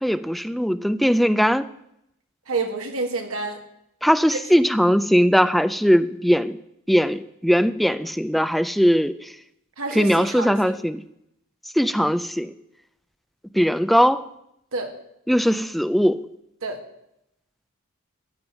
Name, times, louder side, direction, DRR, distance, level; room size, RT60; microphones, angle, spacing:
voice 1, 0.0-1.7 4.0-6.6 6.9-9.3 9.9-11.0 11.7-12.5 13.5-14.3 15.3-16.3, equal, ahead, 12 dB, 0.4 m, -20 dB
voice 2, 2.5-3.6 4.3-4.4 9.8-10.7 14.7-14.9 16.6-16.8, right 3 dB, 70° right, 3 dB, 2.0 m, -28 dB
14.0 x 9.4 x 5.8 m, 0.80 s
head